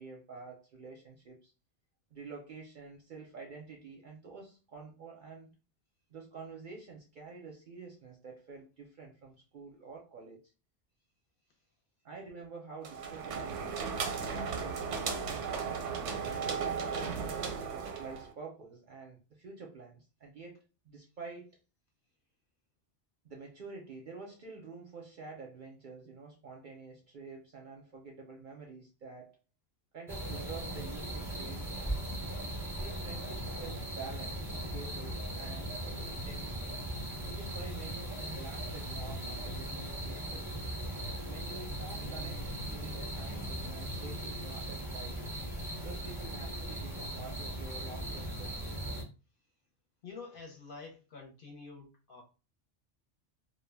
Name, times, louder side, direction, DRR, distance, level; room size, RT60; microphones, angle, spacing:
voice 1, 0.0-1.5 2.1-5.6 6.1-10.5 12.0-16.7 17.5-21.5 23.2-29.4 29.9-32.1 32.7-36.8 37.2-40.4 41.3-45.2 45.8-48.7, right 4 dB, 55° right, 0.6 m, -48 dB
sound 1, 12.8-18.3, right 5 dB, 85° right, 0.9 m, -35 dB
sound 2, 30.1-49.0, right 1 dB, 5° right, 0.5 m, -38 dB
voice 2, 50.0-52.2, left 4 dB, 55° left, 0.7 m, -48 dB
2.2 x 2.1 x 3.2 m
omnidirectional pair, 1.2 m